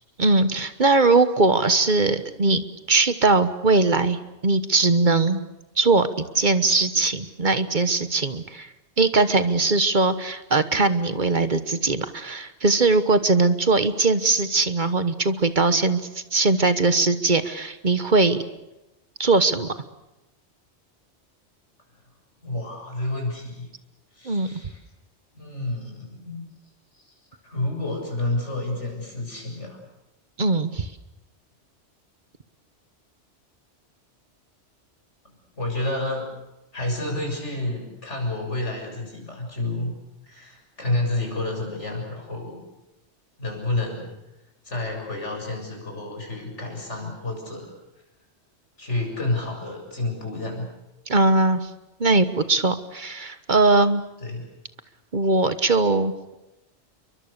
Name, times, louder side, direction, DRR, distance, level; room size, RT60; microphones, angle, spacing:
voice 1, 0.2-2.6 2.9-5.4 5.8-8.7 9.0-18.4 19.2-19.7 24.2-24.5 30.4-30.9 51.1-51.7 52.0-54.0 55.1-56.3, right 3 dB, 45° right, 11 dB, 1.3 m, -20 dB
voice 2, 22.4-23.7 24.1-24.8 25.3-26.5 27.0-27.1 27.4-29.8 35.5-36.3 36.7-39.9 40.2-42.6 43.4-44.1 44.6-47.7 48.8-50.7 54.2-54.5, left 2 dB, 90° left, 1 dB, 7.5 m, -29 dB
29.5 x 23.5 x 6.7 m, 0.95 s
omnidirectional pair, 1.2 m